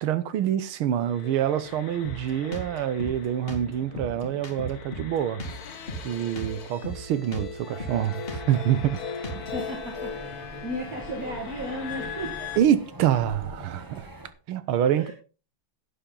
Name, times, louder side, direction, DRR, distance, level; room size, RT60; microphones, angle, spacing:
voice 1, 0.0-5.4 6.0-9.0 12.6-14.1 14.5-15.1, right 10 dB, 90° right, 1.8 m, -26 dB
sound 1, 1.0-12.6, left 6 dB, 50° left, 1.5 m, -39 dB
Drum kit, 2.0-9.7, right 1 dB, 30° left, 2.3 m, -37 dB
sound 2, 9.3-14.3, right 1 dB, 15° right, 0.7 m, -43 dB
voice 2, 9.3-12.5 14.9-15.1, equal, 45° right, 2.4 m, -35 dB
11.5 x 8.9 x 3.9 m
omnidirectional pair, 2.3 m